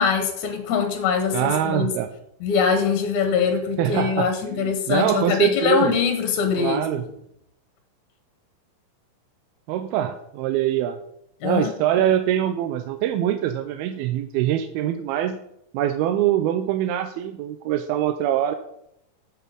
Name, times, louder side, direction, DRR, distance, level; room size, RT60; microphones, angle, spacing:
voice 1, 0.0-1.9 2.4-7.1 11.4-11.7, left 6 dB, 65° left, 6 dB, 2.2 m, -23 dB
voice 2, 1.3-2.1 3.8-5.9 6.6-7.0 9.7-11.0 11.4-15.4 15.7-18.6, right 11 dB, 90° right, 8 dB, 2.6 m, -24 dB
11.0 x 7.2 x 5.1 m, 0.75 s
omnidirectional pair, 4.3 m